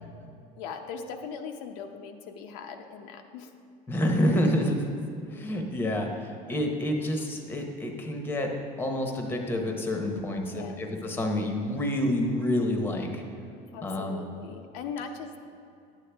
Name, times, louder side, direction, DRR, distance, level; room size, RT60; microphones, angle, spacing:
voice 1, 0.6-3.5 10.2-10.8 13.7-15.4, left 6 dB, 90° left, 4 dB, 0.7 m, -40 dB
voice 2, 3.9-4.9 5.3-6.1 6.5-8.5 8.8-13.2 13.8-14.2, left 1 dB, 10° left, 3 dB, 0.8 m, -28 dB
10.5 x 8.3 x 3.4 m, 2.6 s
cardioid pair, 155°, 17 cm